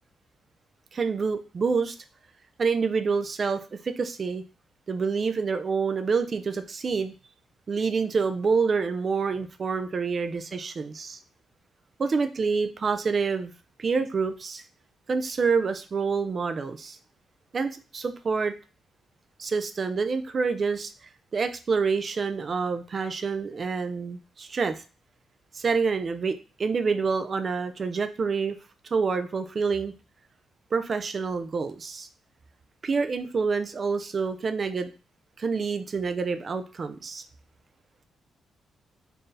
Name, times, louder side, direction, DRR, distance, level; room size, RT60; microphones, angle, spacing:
voice 1, 0.9-2.0 2.6-4.4 4.9-7.1 7.7-11.2 12.0-13.5 13.8-14.6 15.1-17.0 17.5-18.5 19.4-20.9 21.3-24.8 25.5-28.6 28.9-29.9 30.7-32.1 32.8-34.9 35.4-37.2, right 5 dB, 35° right, 9 dB, 0.4 m, -27 dB
4.3 x 2.6 x 3.2 m, 0.35 s
cardioid pair, 140°, 0 cm